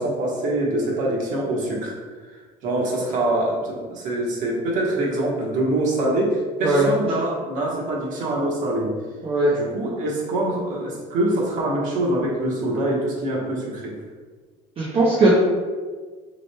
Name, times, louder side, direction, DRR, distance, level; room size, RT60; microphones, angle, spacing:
voice 1, 0.0-2.0 2.3-8.9 9.5-14.0, right 1 dB, 60° right, -2 dB, 1.2 m, -24 dB
voice 2, 14.8-15.3, right 2 dB, 40° right, -6 dB, 0.8 m, -18 dB
6.0 x 3.1 x 2.2 m, 1.5 s
cardioid pair, 120°, 15 cm